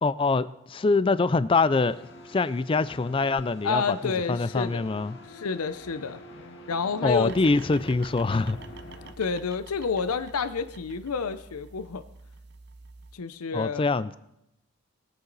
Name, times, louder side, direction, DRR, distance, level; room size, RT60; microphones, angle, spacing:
voice 1, 0.0-5.2 7.0-8.6 13.5-14.2, left 3 dB, 25° left, 16 dB, 0.3 m, -24 dB
sound 1, 1.7-9.1, left 1 dB, 55° left, 1.5 m, -46 dB
voice 2, 3.6-4.8 5.3-6.2 6.7-7.4 9.2-12.0 13.1-13.8, left 5 dB, 90° left, 12 dB, 0.6 m, -29 dB
sound 2, 7.2-13.2, right 4 dB, 50° right, 0.6 m, -48 dB
20.0 x 8.2 x 4.0 m, 0.85 s
head